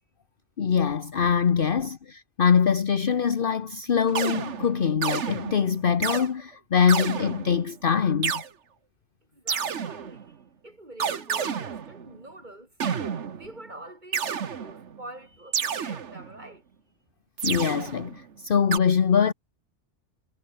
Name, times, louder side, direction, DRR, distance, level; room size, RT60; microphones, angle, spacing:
voice 1, 0.6-8.4 17.4-19.3, left 7 dB, 50° left, 1.1 m, -23 dB
sound 1, 4.1-6.3 6.9-7.7 8.2-8.5 9.5-10.3 11.0-12.2 12.8-13.6 14.1-15.0 15.5-16.5 17.4-18.2 18.7-18.8, right 7 dB, 90° right, 1.6 m, -30 dB
voice 2, 9.3-10.3 10.6-12.7 13.4-14.2 14.6-16.6, right 1 dB, 40° right, 5.4 m, -45 dB
omnidirectional pair, 1.2 m